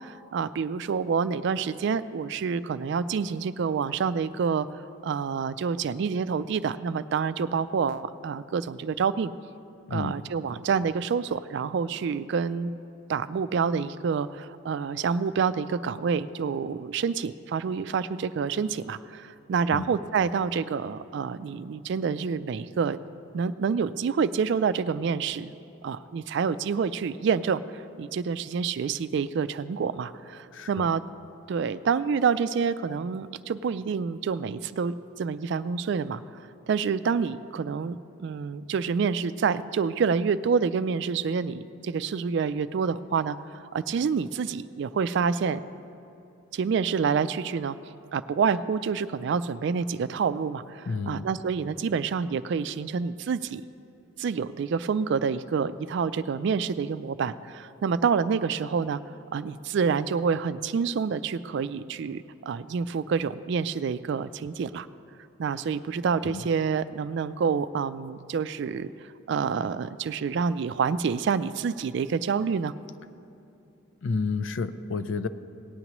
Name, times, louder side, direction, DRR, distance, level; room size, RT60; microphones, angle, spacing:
voice 1, 0.0-4.7 5.0-9.3 9.9-12.7 13.1-23.0 23.3-25.5 25.8-27.6 28.0-31.0 31.5-36.2 36.7-45.6 46.5-47.8 48.1-53.6 54.2-59.0 59.3-64.9 65.4-68.9 69.3-72.7, right 6 dB, 60° right, 13 dB, 0.3 m, -27 dB
voice 2, 9.9-10.2 19.7-19.9 30.5-30.9 50.9-51.2 66.2-66.4 74.0-75.3, left 4 dB, 70° left, 12 dB, 0.4 m, -30 dB
18.0 x 9.5 x 3.0 m, 2.7 s
head